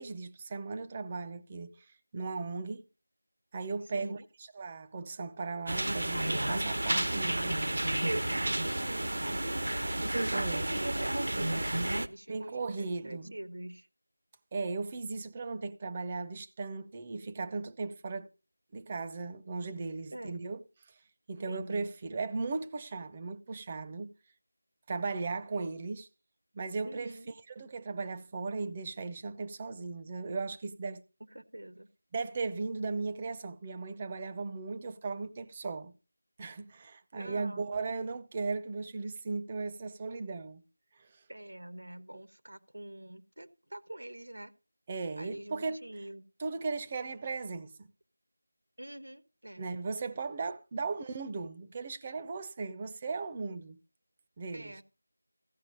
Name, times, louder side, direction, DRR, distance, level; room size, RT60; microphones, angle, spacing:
voice 1, 0.0-1.7 2.1-2.8 3.5-4.2 4.6-7.6 10.3-11.3 12.3-13.3 14.5-18.3 18.7-20.6 21.3-24.1 24.9-26.1 26.5-27.1 27.5-31.0 32.1-35.9 36.4-40.6 44.9-45.8 46.4-47.9 49.6-53.8 54.4-54.7, right 4 dB, 20° right, 0.5 m, -37 dB
voice 2, 3.9-4.3 8.6-10.1 10.7-13.9 20.1-20.4 21.5-21.9 26.8-27.3 31.2-31.9 37.2-37.7 41.3-44.5 45.2-46.2 48.8-49.7 54.5-54.8, right 1 dB, 90° right, 1.2 m, -46 dB
sound 1, 5.7-12.1, right 1 dB, 75° right, 0.8 m, -31 dB
15.0 x 5.6 x 5.2 m
figure-of-eight pair, 175°, 0 cm